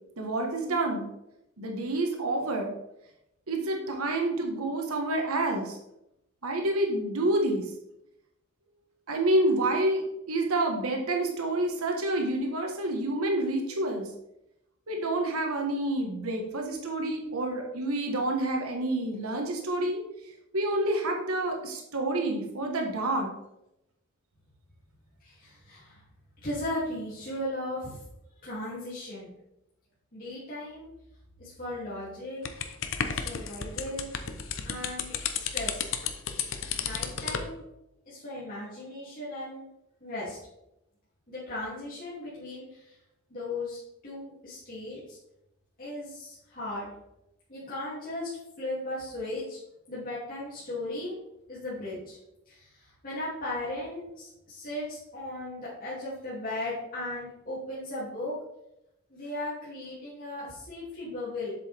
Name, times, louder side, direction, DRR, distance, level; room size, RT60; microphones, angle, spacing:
voice 1, 0.2-1.1 1.6-2.7 3.5-5.8 6.4-7.6 9.1-14.1 14.9-20.0 20.5-23.3, right 1 dB, 90° right, 2 dB, 1.4 m, -28 dB
voice 2, 25.2-26.0 26.4-28.0 28.4-29.3 30.1-30.9 31.4-32.4 33.1-34.1 34.6-35.9 36.8-37.6 38.1-39.7 40.0-40.4 41.3-42.9 43.3-45.2 45.8-46.9 47.5-48.3 48.6-49.6 49.9-51.1 51.5-52.2 52.5-58.4 59.1-61.5, left 1 dB, 40° left, -9 dB, 2.6 m, -37 dB
sound 1, 32.5-37.5, left 7 dB, 60° left, 0.8 m, -32 dB
7.6 x 7.5 x 3.5 m, 0.85 s
head